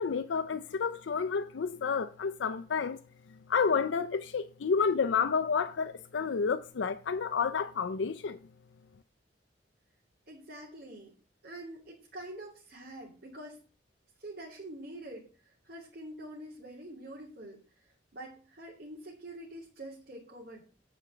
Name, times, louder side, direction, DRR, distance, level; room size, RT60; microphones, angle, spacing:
voice 1, 0.0-3.0 3.5-8.4, left 5 dB, 80° left, 0.5 m, -30 dB
voice 2, 10.3-11.1 11.4-13.6 14.2-17.6 18.1-20.6, right 1 dB, 60° right, 2.9 m, -46 dB
9.2 x 5.0 x 6.8 m
head